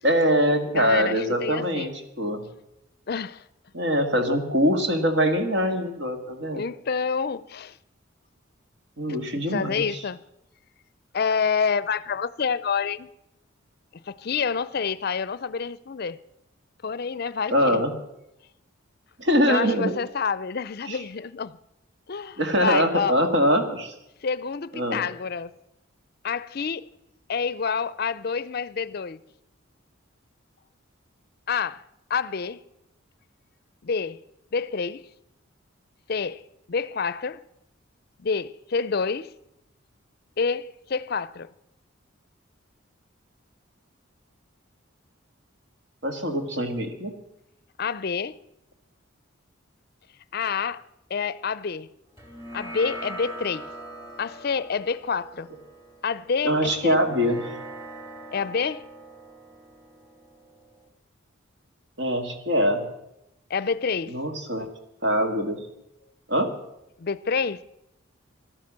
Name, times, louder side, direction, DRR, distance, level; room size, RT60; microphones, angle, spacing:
voice 1, 0.0-2.4 3.7-6.6 9.0-10.0 17.5-17.9 19.2-19.9 20.9-21.0 22.4-23.9 24.7-25.0 46.0-47.1 56.4-57.5 62.0-62.9 64.1-64.7 65.0-65.6 66.3-66.5, equal, 60° right, 1.9 m, -23 dB
voice 2, 0.7-1.9 3.1-3.4 6.5-7.8 9.5-10.2 11.1-13.1 13.9-16.2 16.8-17.8 19.5-21.6 22.1-23.2 24.2-25.5 26.2-26.9 27.3-29.2 31.5-31.8 32.1-32.6 33.8-34.2 34.5-35.0 36.1-36.4 36.7-37.4 38.2-39.3 40.4-41.5 47.8-48.4 50.3-50.8 51.1-51.9 52.5-53.7 54.2-55.5 56.0-57.0 58.3-58.9 63.5-64.2 67.0-67.6, left 5 dB, 50° left, 0.5 m, -28 dB
sound 1, 52.2-60.9, right 1 dB, 15° right, 2.3 m, -41 dB
13.5 x 12.5 x 7.5 m
head